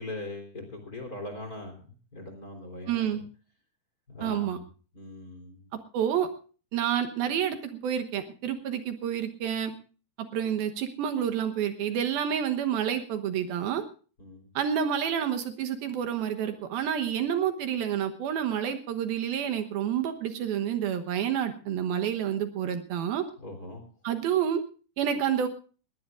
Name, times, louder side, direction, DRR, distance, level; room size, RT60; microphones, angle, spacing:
voice 1, 0.0-3.2 4.1-4.5 4.9-5.6 14.2-14.4 23.4-23.8, left 1 dB, 25° left, 4 dB, 3.7 m, -41 dB
voice 2, 2.9-3.2 4.2-4.6 5.9-6.3 6.7-9.7 10.3-13.9 14.5-23.2 24.0-24.6 25.0-25.5, right 9 dB, 70° right, 7 dB, 2.9 m, -29 dB
20.5 x 18.0 x 2.4 m, 0.38 s
omnidirectional pair, 4.6 m